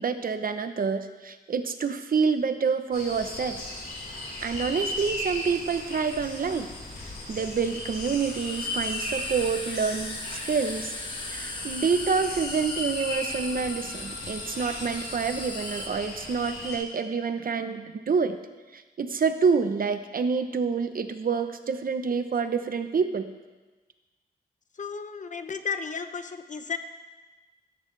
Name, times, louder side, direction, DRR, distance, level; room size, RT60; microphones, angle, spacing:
voice 1, 0.0-3.6 4.4-6.7 7.3-10.9 11.3-18.4 18.7-23.3, right 5 dB, 60° right, 8 dB, 0.9 m, -27 dB
sound 1, 2.9-16.8, left 1 dB, 70° left, 4.7 m, -37 dB
sound 2, 5.4-5.5 7.5-15.9, left 2 dB, 30° left, 1.3 m, -38 dB
voice 2, 24.8-26.8, left 5 dB, 50° left, 9 dB, 0.8 m, -33 dB
16.5 x 14.0 x 3.4 m, 1.2 s
wide cardioid pair, 135°, 17 cm